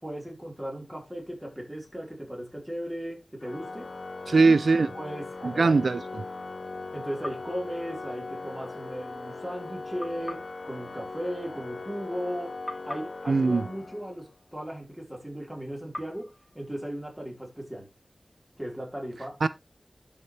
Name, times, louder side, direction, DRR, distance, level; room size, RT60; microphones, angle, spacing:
voice 1, 0.0-3.9 4.9-5.8 6.9-12.6 12.8-17.9 18.6-19.4, equal, 10° right, 4.4 m, -37 dB
Organ, 3.4-14.3, left 3 dB, 70° left, 1.2 m, -39 dB
voice 2, 4.3-4.9 5.4-6.0 13.3-13.6 19.4-19.5, right 4 dB, 80° right, 0.4 m, -20 dB
sound 1, 10.0-12.3 12.7-14.9 15.9-17.8, left 1 dB, 20° left, 2.6 m, -45 dB
12.0 x 5.6 x 3.3 m
wide cardioid pair, 80°, 0 cm